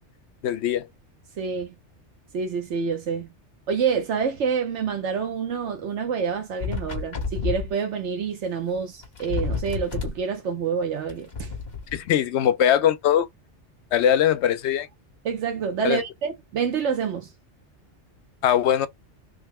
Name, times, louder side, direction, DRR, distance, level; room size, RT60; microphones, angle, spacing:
voice 1, 0.4-0.9 11.9-13.3 13.9-14.9 15.8-16.0 18.4-18.9, left 10 dB, 75° left, 0.8 m, -21 dB
voice 2, 1.4-1.7 2.3-3.3 3.7-11.5 15.2-17.3, right 6 dB, 75° right, 1.1 m, -27 dB
sound 1, 6.6-7.7 8.8-8.9 9.0-10.2 11.1-12.0, left 5 dB, 40° left, 1.1 m, -29 dB
3.4 x 2.1 x 3.5 m
omnidirectional pair, 1.2 m